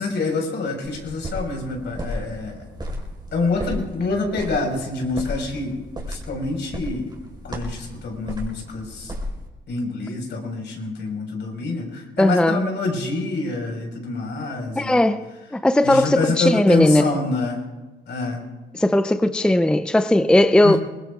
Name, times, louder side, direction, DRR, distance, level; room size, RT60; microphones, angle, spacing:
voice 1, 0.0-2.6 3.3-5.7 6.1-7.1 7.4-9.1 9.7-15.0 15.8-17.6 18.1-18.4 20.6-20.8, left 3 dB, 65° left, 1 dB, 4.7 m, -26 dB
sound 1, 0.8-9.5, equal, 20° right, 4.5 m, -34 dB
voice 2, 12.2-12.6 14.8-15.2 15.5-17.1 18.7-20.8, left 1 dB, 5° left, 11 dB, 0.5 m, -17 dB
23.5 x 20.5 x 2.4 m, 1.2 s
cardioid pair, 90°, 20 cm